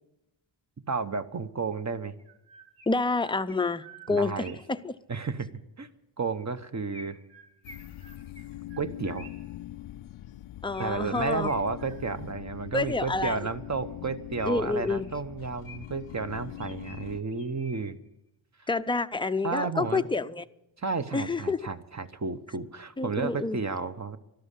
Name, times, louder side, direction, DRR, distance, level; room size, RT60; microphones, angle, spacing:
voice 1, 0.9-2.1 4.1-4.6 5.1-5.5 5.8-5.9 6.2-7.2 8.8-9.3 10.8-18.0 18.6-18.7 19.4-20.1 20.8-24.2, right 4 dB, 35° right, 0.9 m, -32 dB
Chirp tweet, 2.2-4.8 6.9-9.6 10.7-12.3 12.9-13.7 14.3-16.1 16.6-18.1, right 1 dB, 15° right, 1.7 m, -52 dB
voice 2, 2.9-4.9 10.6-11.5 12.7-13.4 14.5-15.1 18.7-20.4 21.1-21.6 23.0-23.6, left 3 dB, 10° left, 0.5 m, -28 dB
sound 1, 7.6-17.2, left 14 dB, 80° left, 0.6 m, -42 dB
13.0 x 12.0 x 8.3 m
wide cardioid pair, 80°, 49 cm